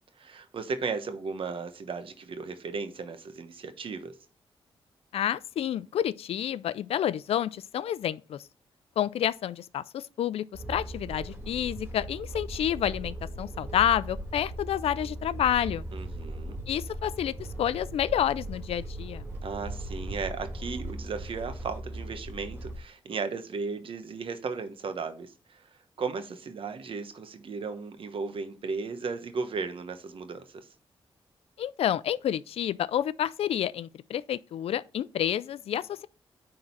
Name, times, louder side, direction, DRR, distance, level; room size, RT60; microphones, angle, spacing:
voice 1, 0.2-4.2 15.9-16.6 19.4-25.7 26.0-30.7, right 4 dB, 60° right, 1.1 m, -35 dB
voice 2, 5.1-8.5 9.0-15.9 16.7-19.2 31.6-36.1, left 10 dB, 80° left, 0.4 m, -29 dB
sound 1, 10.5-22.8, right 1 dB, 20° right, 2.8 m, -38 dB
9.6 x 3.8 x 4.6 m
cardioid pair, 80°, 10 cm